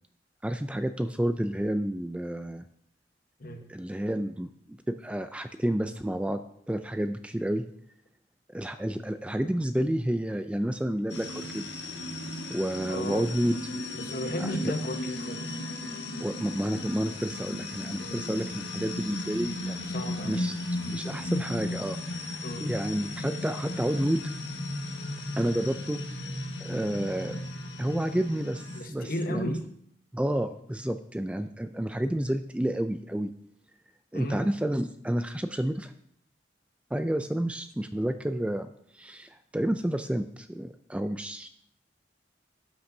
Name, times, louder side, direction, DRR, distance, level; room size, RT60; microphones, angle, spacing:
voice 1, 0.4-2.7 3.7-6.4 6.7-7.7 8.5-11.7 12.5-13.6 16.2-19.9 20.2-20.5 20.9-24.2 25.4-26.0 26.6-27.4 27.8-29.5 30.1-33.3 34.1-35.9 36.9-38.7 38.9-41.5, right 1 dB, 5° right, 9 dB, 0.3 m, -30 dB
sound 1, 11.1-28.8, left 1 dB, 75° left, 1.4 m, -35 dB
voice 2, 12.9-13.3 13.9-15.6 18.0-18.5 19.8-20.4 22.4-22.7 28.7-29.6 34.1-34.4, left 1 dB, 55° left, 5 dB, 1.1 m, -34 dB
13.0 x 8.6 x 2.7 m, 0.68 s
head